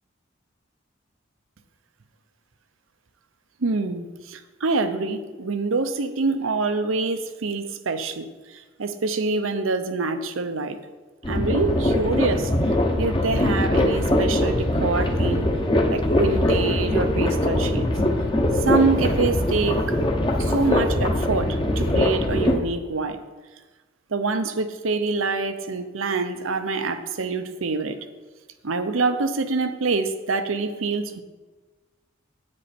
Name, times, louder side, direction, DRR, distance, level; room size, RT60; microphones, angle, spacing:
voice 1, 3.6-10.8 11.3-15.5 15.9-17.9 18.6-20.0 20.4-23.2 24.1-28.0 28.6-31.2, right 3 dB, 85° right, 9 dB, 0.7 m, -26 dB
sound 1, 11.2-22.6, left 1 dB, 25° left, 0.9 m, -22 dB
9.7 x 8.9 x 4.3 m, 1.3 s
head